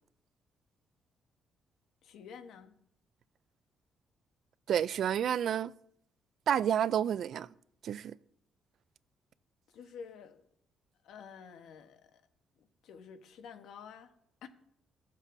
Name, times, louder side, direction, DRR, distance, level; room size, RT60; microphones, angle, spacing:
voice 1, 2.0-2.7 9.7-10.4 11.0-12.2 12.6-14.1 14.4-14.5, left 6 dB, 80° left, 1.2 m, -50 dB
voice 2, 4.7-5.7 6.5-7.5 7.8-8.1, right 9 dB, 65° right, 0.3 m, -29 dB
17.0 x 7.2 x 2.7 m
cardioid pair, 90°, 0 cm